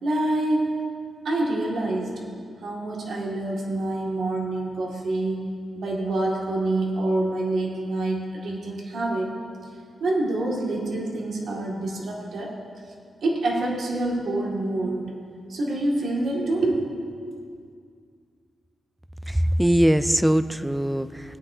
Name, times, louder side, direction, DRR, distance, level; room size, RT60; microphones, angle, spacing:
voice 1, 0.0-0.7 1.2-2.2 2.6-9.3 10.0-12.6 13.2-15.2 15.5-16.9, right 2 dB, 75° right, -2 dB, 2.0 m, -26 dB
voice 2, 19.3-21.4, equal, 5° right, 13 dB, 0.4 m, -21 dB
18.0 x 9.8 x 2.8 m, 2.2 s
cardioid pair, 105°, 0 cm